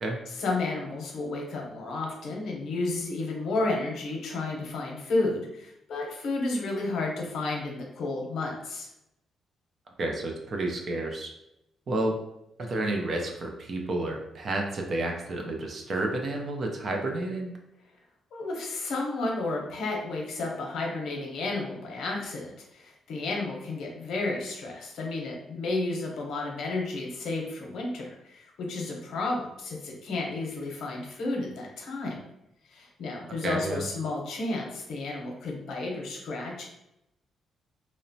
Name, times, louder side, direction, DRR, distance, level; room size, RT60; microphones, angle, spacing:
voice 1, 0.4-8.9 18.3-32.2 32.7-36.6, left 2 dB, 75° left, 0 dB, 0.7 m, -32 dB
voice 2, 10.0-11.3 11.9-12.2 12.6-17.5 33.4-33.8, right 2 dB, 45° right, 2 dB, 0.4 m, -30 dB
2.9 x 2.0 x 2.6 m, 0.84 s
cardioid pair, 135°, 0 cm